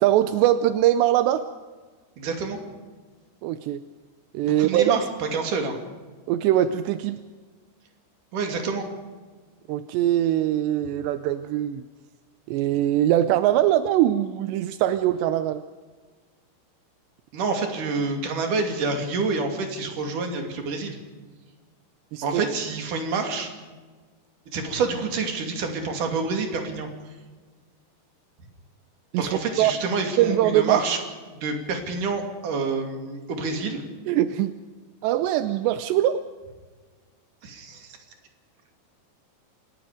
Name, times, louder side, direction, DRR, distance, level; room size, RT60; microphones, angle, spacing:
voice 1, 0.0-1.4 3.4-3.8 4.3-5.0 6.3-7.2 9.7-11.8 12.5-15.6 22.1-22.4 29.1-29.7 30.2-30.8 34.1-34.5 35.0-36.2, right 12 dB, 85° right, 11 dB, 2.9 m, -22 dB
voice 2, 2.2-2.6 4.4-5.7 8.3-8.9 17.3-21.0 22.2-23.5 24.5-26.9 29.2-31.0 31.3-33.8 37.4-37.9, right 4 dB, 50° right, 3 dB, 3.9 m, -27 dB
28.0 x 18.5 x 5.1 m, 1.4 s
omnidirectional pair, 4.9 m